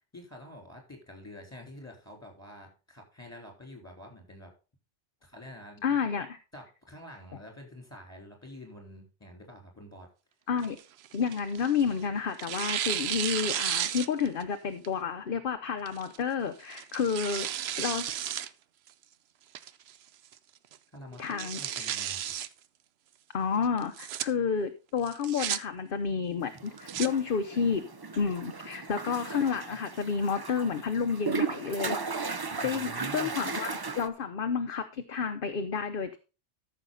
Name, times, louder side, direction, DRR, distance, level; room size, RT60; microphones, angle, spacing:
voice 1, 0.1-4.5 5.2-6.0 6.5-10.1 20.9-22.3 32.6-33.3, left 1 dB, 10° left, 1 dB, 3.7 m, -47 dB
voice 2, 5.8-6.4 10.5-10.8 11.1-17.5 17.8-18.1 21.2-21.6 23.3-27.8 28.2-32.0 32.3-33.7 33.9-36.2, left 6 dB, 50° left, 8 dB, 0.9 m, -30 dB
Tearing, 10.6-11.9 12.4-14.4 14.8-14.9 15.9-16.2 16.7-18.5 18.9-19.0 19.5-20.0 20.3-20.4 20.7-20.8 21.2-22.5 23.8-24.2 25.0-25.6 26.6-27.1, right 10 dB, 65° right, 0.8 m, -33 dB
sound 1, 26.5-34.1, right 4 dB, 30° right, 0.5 m, -36 dB
13.5 x 6.4 x 3.9 m, 0.33 s
omnidirectional pair, 1.2 m